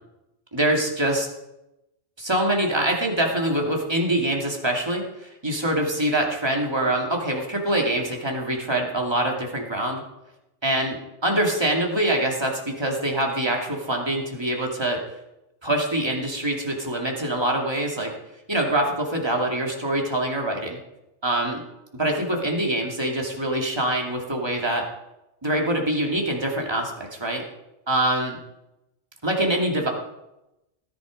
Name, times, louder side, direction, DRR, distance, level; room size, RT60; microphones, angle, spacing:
voice 1, 0.5-1.3 2.2-10.0 10.6-11.0 11.2-15.0 15.6-18.1 18.5-20.8 21.2-21.6 22.0-24.8 25.4-27.4 27.9-28.4 29.2-29.9, right 1 dB, 20° right, 0 dB, 2.6 m, -24 dB
18.0 x 11.0 x 5.2 m, 0.94 s
omnidirectional pair, 1.2 m